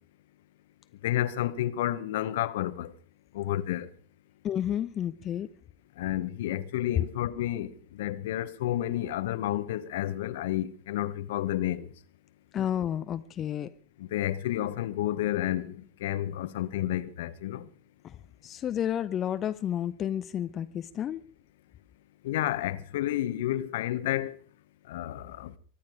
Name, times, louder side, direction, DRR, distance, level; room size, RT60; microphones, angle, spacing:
voice 1, 1.0-2.9 3.3-3.9 6.0-11.9 14.0-17.7 22.2-24.4 24.9-25.5, left 13 dB, 60° left, 1.1 m, -30 dB
voice 2, 4.4-5.5 12.5-13.7 18.0-21.2, left 10 dB, 30° left, 0.7 m, -31 dB
24.0 x 10.5 x 5.0 m
figure-of-eight pair, 90°, 0 cm